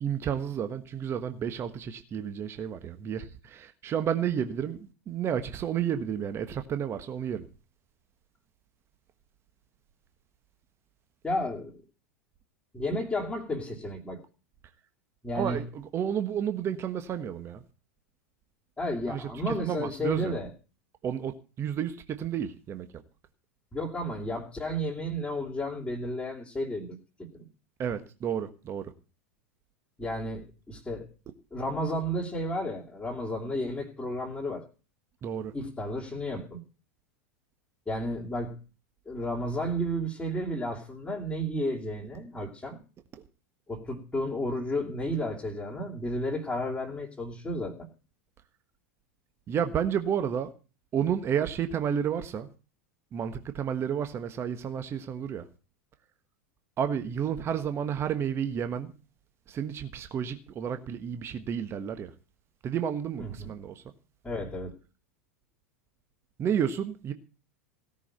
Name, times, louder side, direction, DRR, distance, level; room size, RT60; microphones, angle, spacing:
voice 1, 0.0-7.5 15.3-17.6 19.1-20.4 21.0-23.0 27.8-28.9 35.2-35.5 49.5-50.5 50.9-52.5 53.1-55.5 56.8-58.9 59.5-62.1 62.6-63.8 66.4-67.1, right 8 dB, 30° right, 1.3 m, -31 dB
voice 2, 11.2-11.8 12.7-14.2 15.2-15.6 18.8-20.5 23.7-27.5 30.0-31.1 31.5-34.7 35.5-36.6 37.9-38.6 39.0-42.8 43.7-47.9 63.2-63.5 64.2-64.7, equal, 10° left, 3.0 m, -32 dB
17.0 x 6.4 x 8.8 m
figure-of-eight pair, 90°, 8 cm